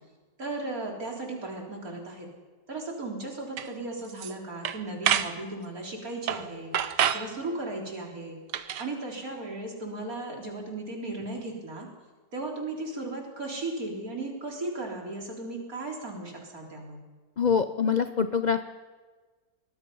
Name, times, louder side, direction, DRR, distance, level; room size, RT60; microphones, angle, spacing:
voice 1, 0.4-2.3 2.7-6.7 7.1-8.4 8.8-11.9 12.3-17.0, right 2 dB, 55° right, 0 dB, 4.2 m, -36 dB
sound 1, 3.6-3.7 4.1-4.3 4.7-5.3 6.3-6.5 6.7-7.3 8.5-8.9, right 9 dB, 85° right, 1.5 m, -27 dB
voice 2, 17.4-18.6, left 6 dB, 55° left, 10 dB, 0.5 m, -24 dB
23.0 x 20.0 x 5.5 m, 1.3 s
omnidirectional pair, 1.8 m